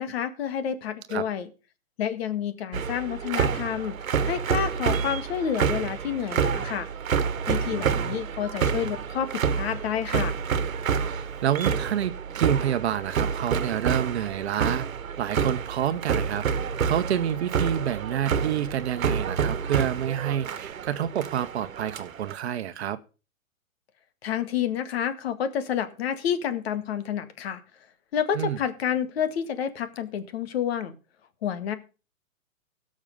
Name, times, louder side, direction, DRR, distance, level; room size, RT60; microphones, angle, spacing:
voice 1, 0.0-1.5 2.0-4.0 4.2-6.9 7.5-10.3 24.2-27.6 28.1-30.9 31.4-31.7, left 8 dB, 45° left, 11 dB, 1.9 m, -29 dB
sound 1, 2.7-22.4, right 7 dB, 75° right, 1.4 m, -28 dB
voice 2, 7.7-8.2 11.0-14.8 15.2-16.4 16.8-23.0 28.3-28.6, right 10 dB, 50° right, 12 dB, 1.1 m, -28 dB
17.0 x 6.5 x 5.4 m, 0.34 s
hypercardioid pair, 150°, 41 cm